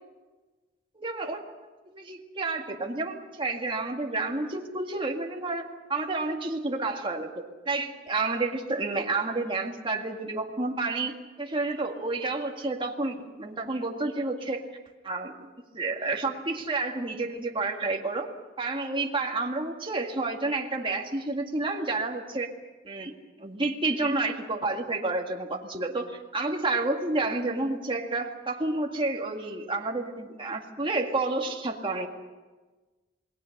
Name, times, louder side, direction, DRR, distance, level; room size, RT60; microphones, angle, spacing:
voice 1, 1.0-1.4 1.9-5.6 5.9-11.1 11.4-14.6 15.0-15.5 15.7-22.5 22.8-32.1, right 3 dB, 25° right, 2 dB, 2.0 m, -30 dB
28.0 x 20.0 x 6.6 m, 1.3 s
head